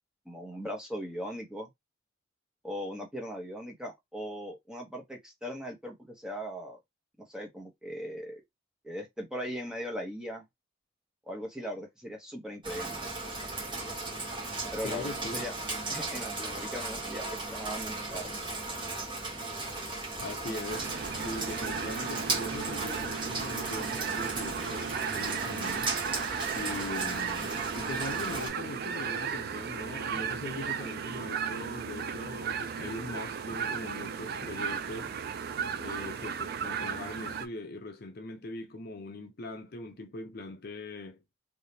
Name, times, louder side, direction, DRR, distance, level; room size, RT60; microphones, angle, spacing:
voice 1, 0.3-1.7 2.6-6.8 7.2-8.4 8.8-10.4 11.3-13.0 14.7-15.5 15.9-18.3, equal, 5° right, 1.0 m, -39 dB
Rain, 12.6-28.5, right 2 dB, 25° right, 1.2 m, -36 dB
voice 2, 14.8-15.5 20.2-25.9 26.6-35.2 35.8-41.2, left 2 dB, 50° left, 0.6 m, -41 dB
sound 1, 20.7-37.5, right 6 dB, 50° right, 0.4 m, -35 dB
3.4 x 2.7 x 2.8 m
head